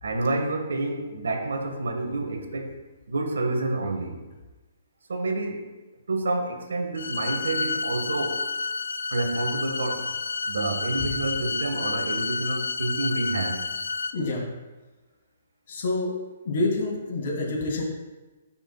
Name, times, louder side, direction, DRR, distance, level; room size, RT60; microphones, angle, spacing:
voice 1, 0.0-2.8 3.1-4.2 5.1-5.8 6.1-8.4 9.1-10.2 10.5-13.7, right 2 dB, 75° right, 4 dB, 1.4 m, -28 dB
sound 1, 7.0-14.1, left 4 dB, 75° left, 0.5 m, -30 dB
voice 2, 14.1-14.4 15.7-16.1 16.4-17.8, left 2 dB, 60° left, -1 dB, 2.7 m, -27 dB
15.0 x 6.0 x 2.2 m, 1.2 s
hypercardioid pair, 135°, 0 cm